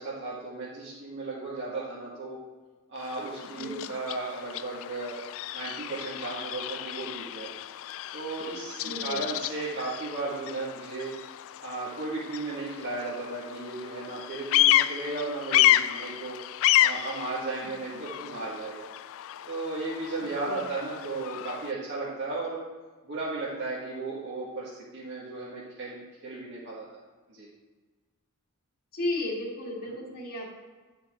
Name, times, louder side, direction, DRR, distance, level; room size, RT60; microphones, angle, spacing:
voice 1, 0.0-2.4 2.9-5.2 5.5-7.5 8.1-11.1 11.6-16.4 16.8-18.9 19.5-22.6 23.0-26.9 27.3-27.5 29.8-30.0, right 3 dB, 55° right, -9 dB, 2.0 m, -35 dB
Bird vocalization bird call bird song, 3.0-21.7, left 14 dB, 65° left, 0.3 m, -30 dB
voice 2, 8.8-9.2 17.9-18.0 20.4-20.6 28.9-30.5, left 2 dB, 45° left, -2 dB, 1.9 m, -34 dB
11.0 x 5.7 x 3.7 m, 1.3 s
head